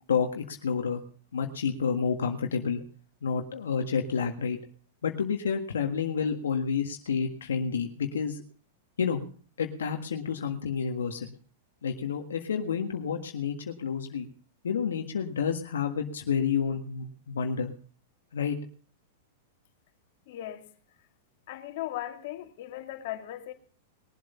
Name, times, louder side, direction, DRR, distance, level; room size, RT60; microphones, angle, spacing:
voice 1, 0.1-1.0 1.3-2.8 3.2-4.6 5.0-8.4 9.0-9.2 9.6-11.3 11.8-14.3 14.6-17.7 18.3-18.6, left 6 dB, 90° left, 1.7 m, -29 dB
voice 2, 20.3-20.7 21.5-23.5, left 13 dB, 60° left, 2.4 m, -37 dB
21.0 x 7.9 x 5.6 m
hypercardioid pair, 125°, 0 cm